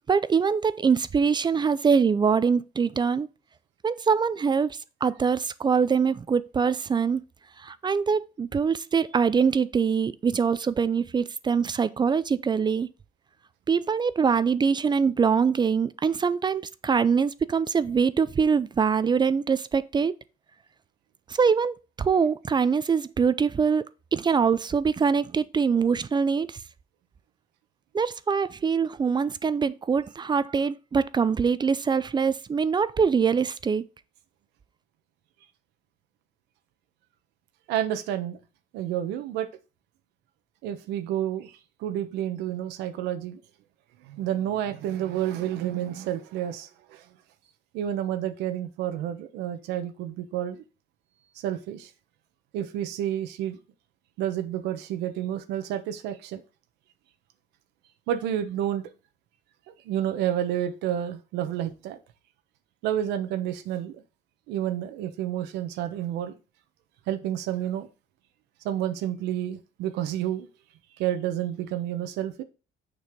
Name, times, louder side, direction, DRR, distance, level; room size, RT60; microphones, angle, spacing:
voice 1, 0.1-3.3 3.8-7.2 7.6-12.9 13.7-20.2 21.3-23.8 24.1-26.6 27.9-33.9, right 6 dB, 25° right, 0.5 m, -24 dB
voice 2, 37.7-38.4 38.7-39.5 40.6-43.4 44.0-47.1 47.7-50.6 51.4-51.9 52.5-53.6 54.2-56.4 58.1-58.9 59.8-62.0 62.8-64.0 64.5-66.3 67.1-67.9 68.6-70.5 71.0-72.4, right 11 dB, 90° right, 1.1 m, -30 dB
6.5 x 6.4 x 3.7 m
cardioid pair, 110°, 17 cm